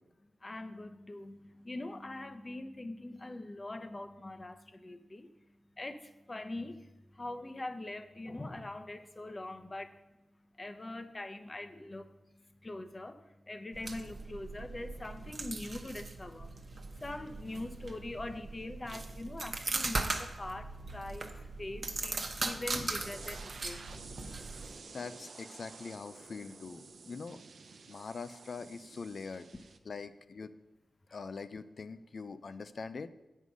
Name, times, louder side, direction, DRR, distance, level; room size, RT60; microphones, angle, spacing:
voice 1, 0.4-10.0 10.6-16.5 17.0-23.9, left 2 dB, 35° left, 9 dB, 0.8 m, -43 dB
sound 1, 13.7-24.8, right 3 dB, 55° right, 1.0 m, -39 dB
sound 2, 23.0-29.8, right 4 dB, 75° right, 0.6 m, -51 dB
voice 2, 24.9-27.4 27.9-29.5 29.9-30.5 31.1-33.1, left 4 dB, 65° left, 12 dB, 0.5 m, -43 dB
8.2 x 5.5 x 6.2 m, 1.0 s
cardioid pair, 45°, 0 cm